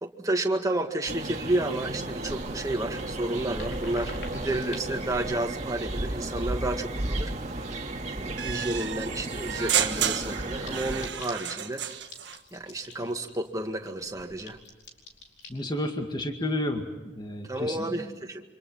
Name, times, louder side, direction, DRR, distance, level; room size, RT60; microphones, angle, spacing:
voice 1, 0.0-7.3 8.1-11.8 12.5-14.6 17.5-18.4, right 1 dB, 20° right, 4 dB, 1.9 m, -31 dB
sound 1, 1.1-11.1, right 2 dB, 40° right, 2.1 m, -34 dB
sound 2, 2.3-7.3 7.7-8.3 8.5-8.6 8.9-9.0 9.2-15.5, left 1 dB, 70° left, 4.6 m, -45 dB
sound 3, 8.4-12.4, right 9 dB, 80° right, 1.5 m, -31 dB
voice 2, 15.5-18.2, left 1 dB, 25° left, 4 dB, 2.1 m, -32 dB
28.0 x 25.5 x 5.7 m, 1.1 s
head